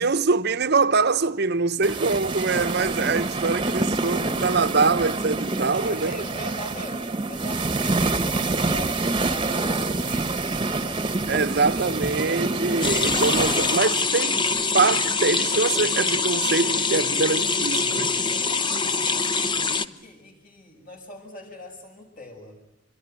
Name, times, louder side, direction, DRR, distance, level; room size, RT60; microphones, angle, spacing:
voice 1, 0.0-6.2 11.3-14.5 14.7-18.1, right 4 dB, 55° right, 1.0 m, -24 dB
sound 1, 1.8-13.8, right 3 dB, 25° right, 1.3 m, -26 dB
voice 2, 5.6-7.0 7.3-12.0 18.5-22.6, left 1 dB, 45° left, 7.8 m, -42 dB
sound 2, 12.8-19.8, left 4 dB, 25° left, 0.9 m, -24 dB
27.0 x 22.5 x 9.5 m
head